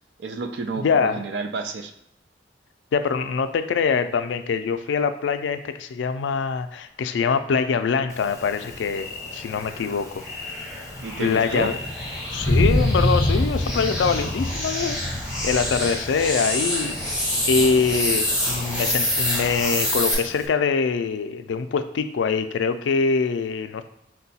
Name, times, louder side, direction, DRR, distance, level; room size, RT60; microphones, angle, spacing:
voice 1, 0.2-1.9 11.0-11.7, right 4 dB, 70° right, 7 dB, 0.4 m, -30 dB
voice 2, 0.8-1.2 2.9-10.2 11.2-11.8 12.3-15.0 15.4-17.0 17.4-23.8, left 5 dB, 85° left, 10 dB, 0.3 m, -24 dB
Thunder, 8.1-20.5, left 1 dB, 20° left, 0.6 m, -28 dB
sound 1, 8.6-20.1, left 1 dB, 5° right, 0.9 m, -28 dB
4.6 x 2.2 x 4.1 m, 0.81 s
head